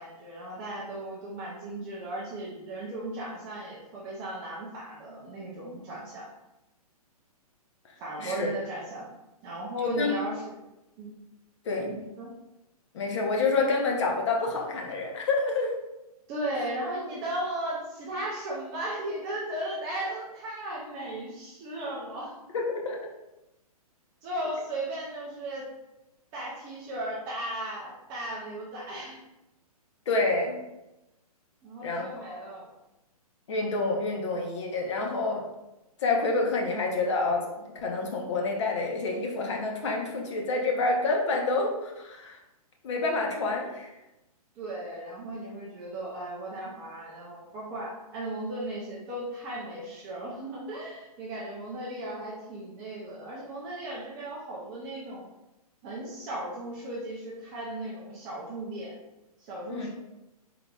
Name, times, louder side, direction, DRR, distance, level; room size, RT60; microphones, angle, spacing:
voice 1, 0.0-6.3 8.0-9.1 9.4-10.5 11.0-11.1 11.9-12.3 16.3-22.4 24.2-25.7 26.3-29.2 31.6-32.7 44.6-55.2 55.8-58.9 59.4-59.9, right 1 dB, 15° right, -5 dB, 0.3 m, -36 dB
voice 2, 11.6-12.0 12.9-15.7 22.5-23.0 30.1-30.6 31.8-32.4 33.5-35.5 36.0-42.4 42.8-43.9 59.7-59.9, left 3 dB, 50° left, 1 dB, 0.8 m, -28 dB
3.8 x 3.3 x 2.3 m, 0.96 s
hypercardioid pair, 160°, 20 cm